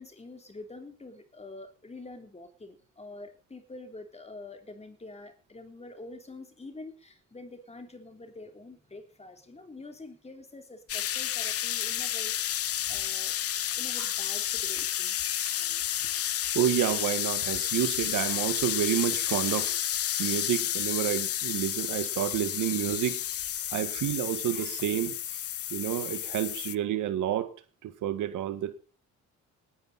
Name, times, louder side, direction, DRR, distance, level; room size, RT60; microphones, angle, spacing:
voice 1, 0.0-13.3 13.7-15.3, left 2 dB, 20° left, 3.4 m, -46 dB
sound 1, 10.9-26.8, left 11 dB, 50° left, 0.6 m, -31 dB
voice 2, 15.3-15.8 16.2-16.3 16.5-19.8 20.2-23.2 23.7-25.4 25.7-27.6 27.8-28.8, right 11 dB, 85° right, 2.0 m, -30 dB
19.0 x 11.0 x 4.2 m
cardioid pair, 90°, 30 cm